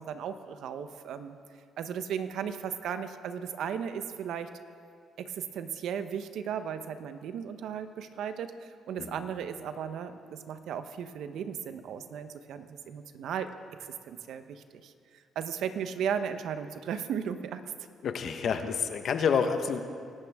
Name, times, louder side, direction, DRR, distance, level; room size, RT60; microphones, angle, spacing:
voice 1, 0.0-1.4 1.8-4.5 5.2-13.5 13.8-17.6, right 8 dB, 75° right, 9 dB, 0.9 m, -36 dB
voice 2, 18.0-19.8, left 6 dB, 60° left, 7 dB, 1.1 m, -28 dB
24.5 x 12.0 x 3.6 m, 2.2 s
cardioid pair, 90°, 0 cm